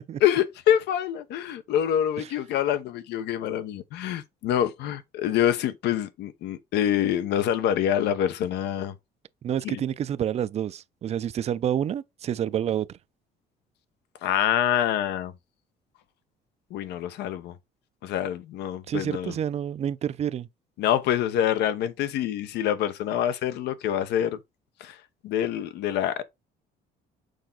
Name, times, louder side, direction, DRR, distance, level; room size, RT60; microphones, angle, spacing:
voice 1, 0.2-8.9 9.6-9.8 14.2-15.3 16.7-17.5 18.0-19.3 20.8-24.4 24.8-25.0 25.2-26.2, left 10 dB, 80° left, 0.9 m, -26 dB
voice 2, 9.4-12.9 18.9-20.5, right 9 dB, 40° right, 0.4 m, -28 dB
6.5 x 4.5 x 3.8 m
cardioid pair, 110°, 17 cm